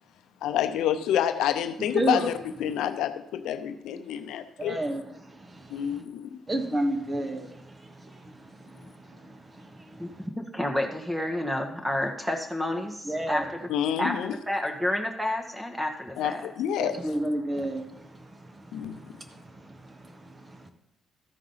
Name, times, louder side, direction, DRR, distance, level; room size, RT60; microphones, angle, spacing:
voice 1, 0.4-2.3 2.6-4.8 5.7-6.4 13.7-14.4 16.2-17.0 18.7-19.1, left 10 dB, 85° left, 0.6 m, -28 dB
voice 2, 1.9-2.3 4.6-6.0 6.5-10.3 13.0-13.5 16.8-20.7, right 1 dB, 25° right, 1.2 m, -33 dB
voice 3, 10.4-13.7 14.0-14.1 14.5-16.4, left 1 dB, 5° right, 1.5 m, -30 dB
13.5 x 4.8 x 5.6 m
cardioid pair, 90°, 0 cm